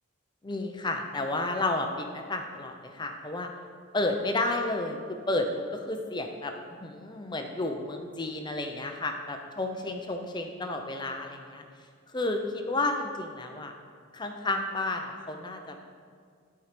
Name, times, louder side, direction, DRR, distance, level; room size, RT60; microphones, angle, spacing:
voice 1, 0.4-3.5 3.9-6.5 6.8-11.6 12.1-13.7 14.1-15.8, left 2 dB, 20° left, 4 dB, 0.6 m, -31 dB
11.5 x 4.7 x 5.1 m, 2.1 s
head